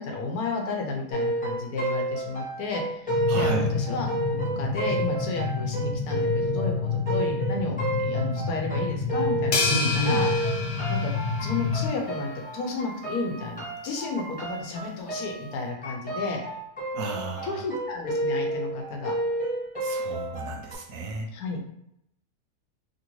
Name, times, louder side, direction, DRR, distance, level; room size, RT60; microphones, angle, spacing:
voice 1, 0.0-10.3 10.9-11.1 11.4-16.4 17.4-19.1 21.3-21.6, left 3 dB, 85° left, 1 dB, 1.2 m, -32 dB
sound 1, 1.1-9.8 10.1-20.7, right 1 dB, 5° left, 0.8 m, -31 dB
sound 2, 3.1-11.9, left 5 dB, 40° left, 1.1 m, -29 dB
voice 2, 3.3-3.7 9.7-10.2 16.9-17.6 19.8-21.3, right 1 dB, 70° right, 3 dB, 0.9 m, -31 dB
sound 3, 9.5-12.0, left 4 dB, 60° left, 0.7 m, -29 dB
3.0 x 2.6 x 3.0 m, 0.77 s
omnidirectional pair, 1.6 m